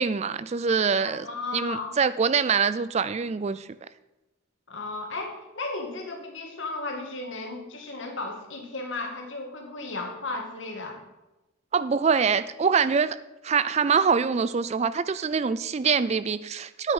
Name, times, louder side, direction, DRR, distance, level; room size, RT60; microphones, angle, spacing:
voice 1, 0.0-1.3 1.5-3.7 11.7-13.2 13.4-16.9, right 6 dB, 35° right, 15 dB, 0.3 m, -24 dB
voice 2, 1.0-1.9 4.7-11.0, left 3 dB, 65° left, 2 dB, 2.2 m, -35 dB
9.4 x 9.3 x 5.4 m, 1.0 s
head